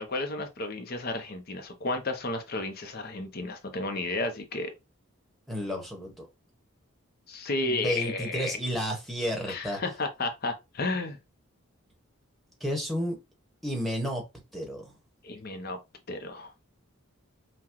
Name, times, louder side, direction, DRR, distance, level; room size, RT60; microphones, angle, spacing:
voice 1, 0.0-4.7 7.3-8.6 9.5-11.2 15.2-15.8 16.1-16.5, left 2 dB, 45° left, 0.7 m, -32 dB
voice 2, 5.5-6.3 7.6-9.8 12.6-13.2 13.6-14.2 14.5-14.9, equal, ahead, 1.1 m, -31 dB
5.7 x 2.2 x 3.0 m
head